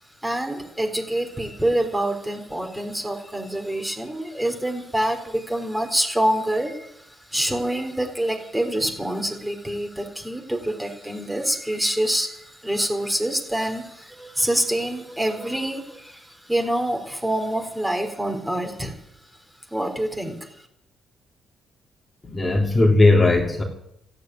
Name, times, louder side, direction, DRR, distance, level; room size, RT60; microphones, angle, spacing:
voice 1, 0.2-19.0 19.7-20.5, right 1 dB, 10° right, 4 dB, 3.9 m, -26 dB
voice 2, 22.2-23.6, left 2 dB, 20° left, 0 dB, 3.0 m, -17 dB
14.5 x 9.4 x 9.3 m, 0.76 s
cardioid pair, 90°, 0 cm